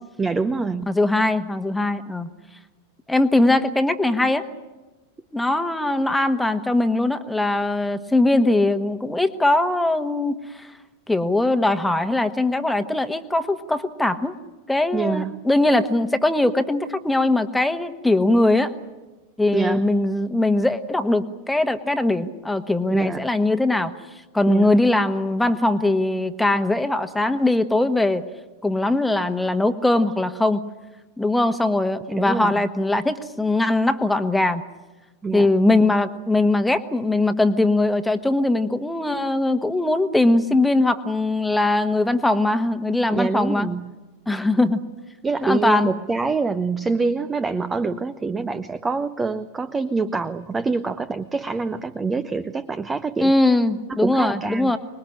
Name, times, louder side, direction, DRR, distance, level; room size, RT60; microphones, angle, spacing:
voice 1, 0.2-1.0 14.9-15.5 19.5-19.9 22.9-23.3 24.5-24.7 32.1-32.6 35.2-35.5 43.1-43.9 45.2-53.3 53.9-54.7, right 4 dB, 15° right, 13 dB, 0.8 m, -25 dB
voice 2, 0.9-2.3 3.1-4.5 5.3-10.7 11.1-14.3 14.7-18.7 19.4-23.9 24.3-28.2 28.6-30.6 31.2-34.6 35.3-43.7 44.3-44.8 45.4-45.9 53.2-54.8, left 2 dB, 5° left, 8 dB, 1.4 m, -21 dB
26.0 x 21.0 x 10.0 m, 1.2 s
figure-of-eight pair, 90°, 0 cm